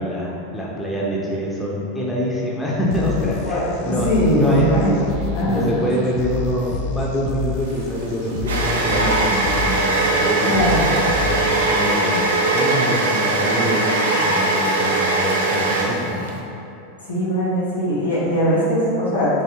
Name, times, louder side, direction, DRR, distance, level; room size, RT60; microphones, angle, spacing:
voice 1, 0.0-4.7 5.4-10.8 11.2-13.8 14.2-16.3, equal, 10° left, -5 dB, 0.6 m, -25 dB
sound 1, 2.9-11.9, left 6 dB, 50° left, 0.3 m, -29 dB
voice 2, 3.4-5.0 5.3-5.7 10.4-10.8 17.1-19.4, equal, 85° left, -8 dB, 1.2 m, -20 dB
sound 2, 7.6-16.4, right 2 dB, 75° right, 0.4 m, -20 dB
3.3 x 3.0 x 2.9 m, 2.7 s
figure-of-eight pair, 85°, 0 cm